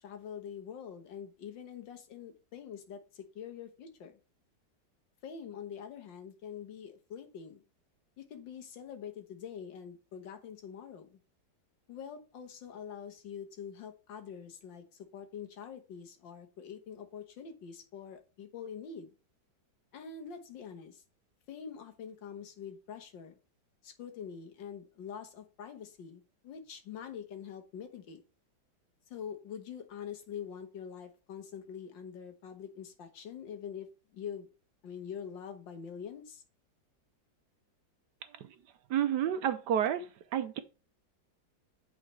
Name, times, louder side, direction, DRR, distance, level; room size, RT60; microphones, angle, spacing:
voice 1, 0.0-4.1 5.2-7.6 8.2-11.2 11.9-14.8 15.1-19.1 19.9-21.0 21.5-23.4 23.8-28.2 29.1-34.5 34.8-36.4, left 7 dB, 80° left, 1.9 m, -45 dB
voice 2, 38.9-40.1 40.3-40.6, right 9 dB, 70° right, 1.2 m, -29 dB
8.3 x 4.4 x 3.2 m
omnidirectional pair, 2.0 m